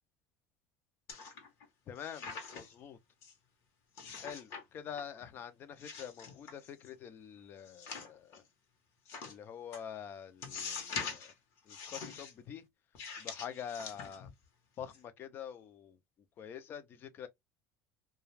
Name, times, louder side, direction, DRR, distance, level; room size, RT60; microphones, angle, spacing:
sound 1, 1.1-1.6 2.0-2.8 3.2-3.3 4.0-4.6 4.9-5.4 5.8-6.9 7.7-8.4 9.1-9.3 9.7-9.8 10.4-11.3 11.7-12.3 12.9-14.4 14.8-15.0, left 6 dB, 55° left, 1.0 m, -44 dB
voice 1, 1.9-2.2 2.5-3.0 4.2-8.3 9.2-11.3 11.7-12.6 13.2-14.3 14.8-15.9 16.4-17.3, left 8 dB, 35° left, 0.5 m, -46 dB
2.3 x 2.3 x 3.2 m
cardioid pair, 140°, 6 cm